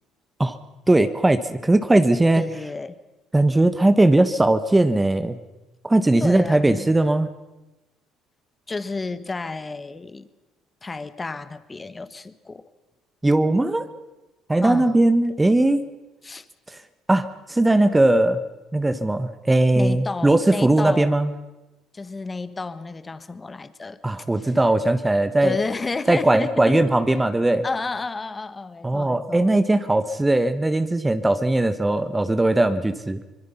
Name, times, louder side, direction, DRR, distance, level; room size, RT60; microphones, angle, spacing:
voice 1, 0.9-2.4 3.3-5.4 5.8-7.3 13.2-13.9 14.5-15.9 16.7-16.8 17.1-18.4 18.7-21.3 24.0-25.6 26.1-27.7 28.8-33.2, right 2 dB, 15° right, 11 dB, 1.2 m, -19 dB
voice 2, 2.4-3.0 6.2-6.9 8.7-10.3 10.8-12.7 14.6-15.0 16.2-16.5 19.7-21.2 21.9-24.6 25.4-26.8 27.6-29.5, left 3 dB, 20° left, 13 dB, 1.4 m, -31 dB
25.5 x 21.0 x 5.7 m, 1.0 s
supercardioid pair, 85°, 0 cm